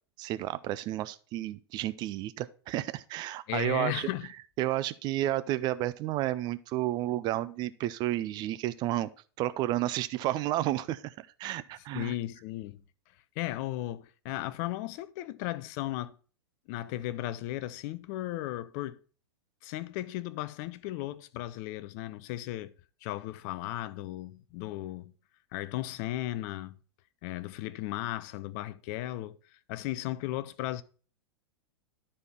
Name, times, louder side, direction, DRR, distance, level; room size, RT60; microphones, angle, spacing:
voice 1, 0.2-4.1 4.6-9.1 9.4-12.1, right 14 dB, 30° right, 0.4 m, -31 dB
voice 2, 3.5-4.3 11.9-12.8 13.4-16.1 16.7-19.0 19.6-22.7 23.0-25.1 25.5-26.8 27.2-30.8, left 15 dB, 40° left, 0.5 m, -36 dB
12.0 x 4.3 x 4.4 m
figure-of-eight pair, 95°, 14 cm